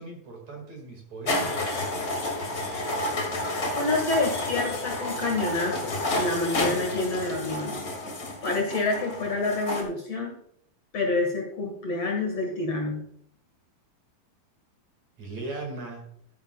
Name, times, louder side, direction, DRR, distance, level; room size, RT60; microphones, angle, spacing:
voice 1, 0.0-2.0 15.2-16.1, right 2 dB, 50° right, 2 dB, 2.9 m, -39 dB
sound 1, 1.3-9.8, left 1 dB, 30° left, 1.9 m, -30 dB
voice 2, 3.8-7.8 8.4-10.3 10.9-13.0, left 2 dB, 50° left, 1 dB, 2.3 m, -28 dB
13.5 x 10.5 x 2.3 m, 0.67 s
omnidirectional pair, 4.4 m